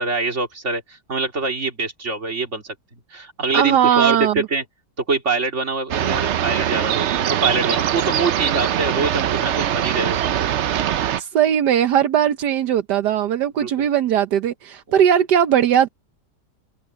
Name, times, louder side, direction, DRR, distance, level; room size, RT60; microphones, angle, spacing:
voice 1, 0.0-2.7 3.1-4.6 5.1-10.5 13.6-13.9, right 3 dB, 45° right, 3.1 m, -24 dB
voice 2, 3.5-4.5 11.2-15.9, right 9 dB, 80° right, 1.5 m, -18 dB
sound 1, 5.9-11.2, right 10 dB, 65° right, 0.7 m, -22 dB
omnidirectional pair, 1.8 m